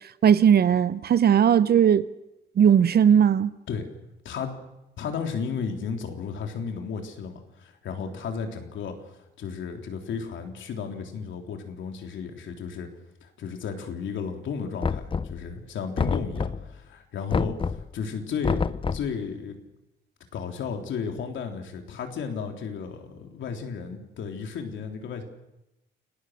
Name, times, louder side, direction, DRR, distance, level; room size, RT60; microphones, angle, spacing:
voice 1, 0.2-2.1 2.6-3.5, right 8 dB, 50° right, 0.9 m, -18 dB
voice 2, 5.0-9.0 9.4-12.9 13.2-19.6 20.3-25.2, left 6 dB, 70° left, 3.6 m, -33 dB
Knock, 14.8-15.5 16.0-16.8 17.3-17.9 18.4-19.2, left 5 dB, 25° left, 0.8 m, -28 dB
29.5 x 18.0 x 6.6 m
cardioid pair, 90°, 20 cm